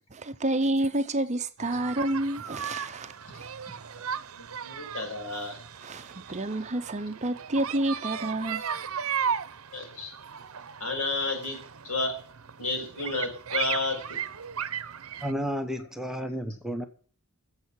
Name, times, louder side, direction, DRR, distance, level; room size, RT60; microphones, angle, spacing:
voice 1, 0.1-3.5 5.8-8.6, right 1 dB, 35° right, 0.7 m, -29 dB
sound 1, 1.6-15.3, right 7 dB, 70° right, 0.8 m, -36 dB
voice 2, 4.3-5.6 9.7-10.1 10.8-11.6 11.8-12.1 12.6-14.2, left 3 dB, 85° left, 5.9 m, -31 dB
voice 3, 15.2-16.9, equal, ahead, 0.9 m, -32 dB
10.5 x 7.4 x 8.2 m
head